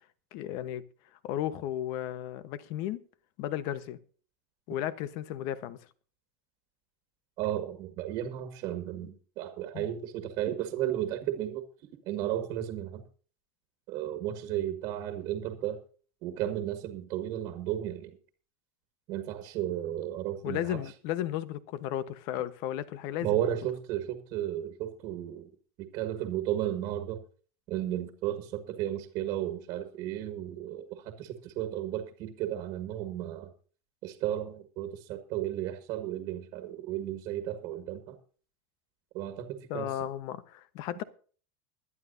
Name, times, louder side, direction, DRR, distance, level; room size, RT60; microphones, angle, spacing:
voice 1, 0.3-0.8 1.2-3.0 3.4-4.0 4.7-5.8 9.7-9.8 20.4-23.5 39.7-41.0, left 12 dB, 50° left, 1.1 m, -34 dB
voice 2, 7.4-11.6 12.1-13.0 13.9-15.8 16.2-18.2 19.1-20.8 23.2-25.5 25.8-27.2 27.7-33.5 34.0-38.2 39.1-39.9, right 12 dB, 45° right, 1.8 m, -34 dB
22.0 x 11.5 x 2.7 m
supercardioid pair, 160°, 9 cm